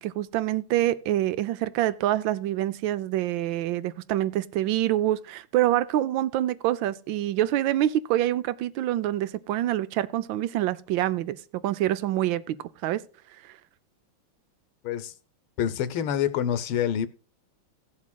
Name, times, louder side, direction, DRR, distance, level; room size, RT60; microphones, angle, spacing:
voice 1, 0.0-11.4 11.6-13.0, right 13 dB, 75° right, 1.3 m, -26 dB
voice 2, 15.6-17.1, left 9 dB, 80° left, 1.6 m, -26 dB
17.5 x 7.2 x 2.2 m
omnidirectional pair, 2.3 m